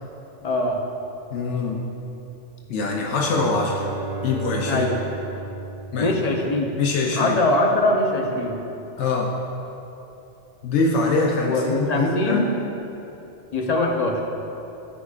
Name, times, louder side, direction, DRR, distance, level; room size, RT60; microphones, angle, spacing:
voice 1, 0.4-0.8 4.7-5.0 6.0-6.8 7.1-8.6 11.4-12.5 13.5-14.2, left 2 dB, 40° left, 1 dB, 0.7 m, -22 dB
voice 2, 1.3-1.8 2.7-3.9 4.2-4.9 5.9-6.1 6.8-7.4 9.0-9.3 10.6-12.5, left 3 dB, 80° left, 0 dB, 1.0 m, -23 dB
Bowed string instrument, 3.0-6.9, right 3 dB, 55° right, 0.9 m, -34 dB
14.0 x 4.9 x 2.4 m, 2.9 s
omnidirectional pair, 1.2 m